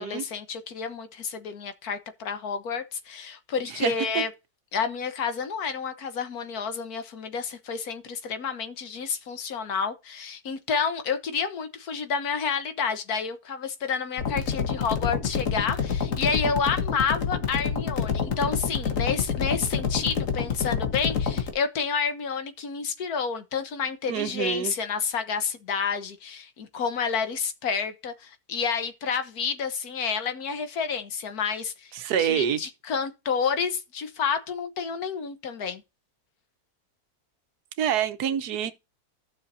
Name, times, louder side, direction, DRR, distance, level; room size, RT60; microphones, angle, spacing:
voice 1, 0.0-4.3 4.7-31.9 32.2-35.8, left 6 dB, 75° left, 1.6 m, -29 dB
voice 2, 3.8-4.2 24.1-24.7 31.9-32.6 37.8-38.7, right 9 dB, 90° right, 1.4 m, -26 dB
sound 1, 14.2-21.5, left 6 dB, 55° left, 1.7 m, -28 dB
15.0 x 6.4 x 2.7 m
omnidirectional pair, 1.6 m